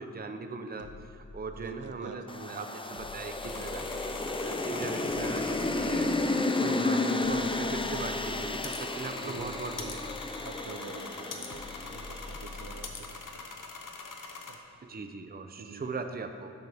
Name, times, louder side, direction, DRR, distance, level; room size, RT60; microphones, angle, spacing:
voice 1, 0.0-3.9 4.2-6.1 6.6-10.1 14.9-16.5, right 4 dB, 30° right, 6 dB, 0.6 m, -39 dB
sound 1, 0.8-2.1 2.9-4.6 5.1-6.5 7.2-8.8 9.4-10.8 11.5-13.1, left 3 dB, 50° left, 0.7 m, -47 dB
voice 2, 1.6-4.0 4.6-4.7 9.2-9.6 10.4-13.4 14.5-14.6 15.6-15.8, right 4 dB, 70° right, 6 dB, 0.8 m, -47 dB
sound 2, 2.3-12.6, left 2 dB, 15° left, 0.4 m, -32 dB
sound 3, 3.4-14.6, left 4 dB, 80° left, 0.9 m, -44 dB
11.0 x 8.0 x 3.5 m, 2.4 s
wide cardioid pair, 80°, 31 cm